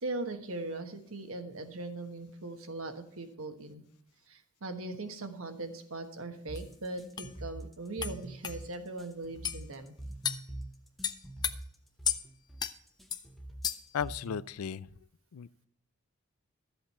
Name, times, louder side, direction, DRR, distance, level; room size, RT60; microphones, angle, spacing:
voice 1, 0.0-3.8 4.3-9.9, right 2 dB, 75° right, 6 dB, 1.4 m, -40 dB
sound 1, 6.5-14.5, right 1 dB, ahead, 0.9 m, -44 dB
sound 2, 6.6-6.7 7.2-7.3 8.0-8.1 8.4-8.6 9.4-9.6 10.2-10.4 11.0-11.5 12.0-12.2 12.6-12.7 13.1-13.2 13.6-13.9, left 8 dB, 20° left, 0.4 m, -33 dB
voice 2, 13.9-14.9 15.3-15.7, left 7 dB, 90° left, 19 dB, 0.4 m, -35 dB
13.0 x 7.9 x 4.3 m, 0.68 s
head